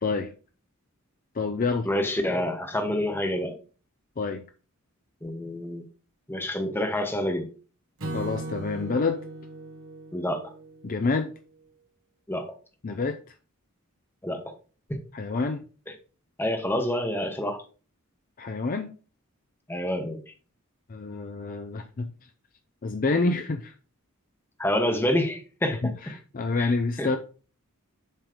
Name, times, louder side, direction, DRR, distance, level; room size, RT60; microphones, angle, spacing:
voice 1, 0.0-0.3 1.3-1.9 4.2-4.4 8.1-9.2 10.8-11.3 12.8-13.2 15.1-15.7 18.4-18.9 20.9-22.1 22.8-23.7 25.8-27.2, left 3 dB, 40° left, 7 dB, 0.5 m, -27 dB
voice 2, 1.8-3.6 5.2-5.8 6.3-7.5 10.1-10.5 12.3-12.5 14.2-14.4 14.9-15.0 16.4-17.6 19.7-20.2 24.6-25.9 26.6-26.7 27.0-27.1, left 1 dB, 10° left, 5 dB, 1.0 m, -27 dB
Acoustic guitar / Strum, 8.0-11.3, right 1 dB, 60° right, 1.2 m, -38 dB
7.5 x 3.1 x 5.0 m, 0.37 s
head